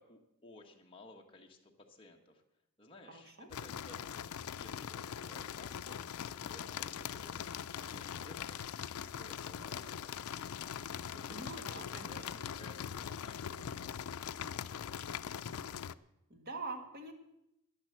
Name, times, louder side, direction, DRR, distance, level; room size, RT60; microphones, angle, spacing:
voice 1, 0.0-2.4 2.8-6.0 6.4-10.6 11.0-11.4 11.7-15.0, left 2 dB, 25° left, 0 dB, 1.6 m, -57 dB
voice 2, 3.1-3.5 11.3-12.2 16.3-17.1, right 3 dB, 45° right, 4 dB, 1.9 m, -44 dB
sound 1, 3.5-16.0, left 8 dB, 85° left, 0.4 m, -42 dB
10.5 x 10.5 x 7.6 m, 0.84 s
head